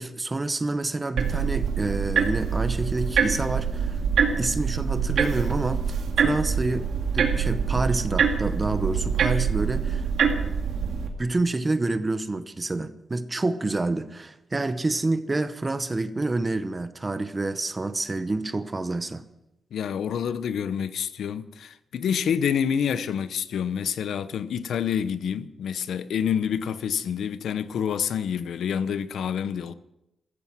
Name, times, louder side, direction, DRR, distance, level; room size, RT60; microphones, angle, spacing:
voice 1, 0.0-4.0 4.4-5.8 6.2-6.9 7.1-10.1 11.2-19.2, right 2 dB, 20° right, 0.8 m, -28 dB
sound 1, 1.2-11.1, right 6 dB, 80° right, 2.2 m, -25 dB
voice 2, 19.7-29.7, left 8 dB, 85° left, 0.8 m, -27 dB
15.0 x 14.0 x 6.1 m
wide cardioid pair, 180°, 0 cm